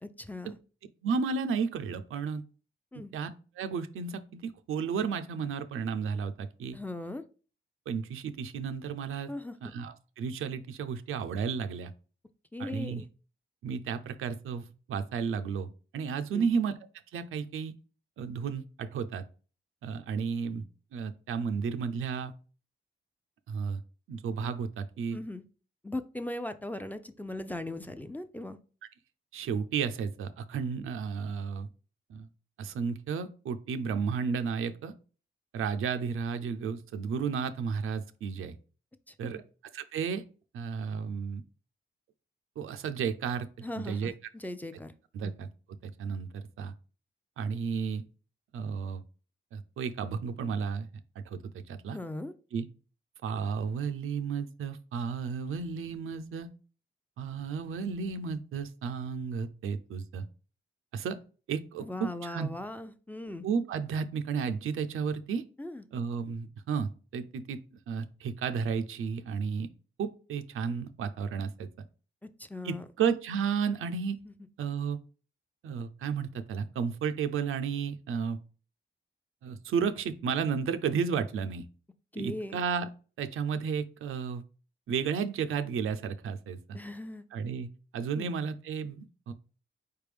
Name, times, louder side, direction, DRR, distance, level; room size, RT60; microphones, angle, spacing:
voice 1, 0.0-0.6 2.9-3.1 6.7-7.2 9.3-9.6 12.5-13.1 16.3-16.5 25.1-25.4 25.8-28.6 39.1-39.4 43.6-44.9 45.2-45.3 51.9-52.3 61.8-63.4 65.6-65.8 72.2-72.8 74.3-74.4 82.1-82.6 86.7-87.2 88.1-88.3, left 2 dB, 10° left, 10 dB, 0.4 m, -39 dB
voice 2, 1.0-2.4 3.1-3.3 3.6-6.8 7.9-9.3 9.6-11.9 12.6-13.0 13.6-16.7 17.1-17.7 18.2-19.2 19.8-20.6 20.9-22.3 23.5-23.8 24.1-25.2 29.3-31.7 32.1-32.3 32.6-34.9 35.5-38.6 39.2-39.4 39.7-40.2 40.5-41.4 42.6-43.5 43.8-44.1 45.1-45.5 45.8-46.7 47.4-48.0 48.5-49.0 49.5-50.9 51.3-52.0 52.5-52.7 53.2-56.5 57.2-60.3 60.9-61.2 61.5-62.5 63.4-65.4 65.9-67.6 67.9-69.7 70.0-71.7 72.6-74.2 74.6-75.0 75.6-78.4 79.4-81.6 82.2-82.9 83.2-84.4 84.9-86.8 87.3-89.3, right 6 dB, 90° right, 10 dB, 0.5 m, -33 dB
4.4 x 3.4 x 3.3 m, 0.37 s
cardioid pair, 75°, 21 cm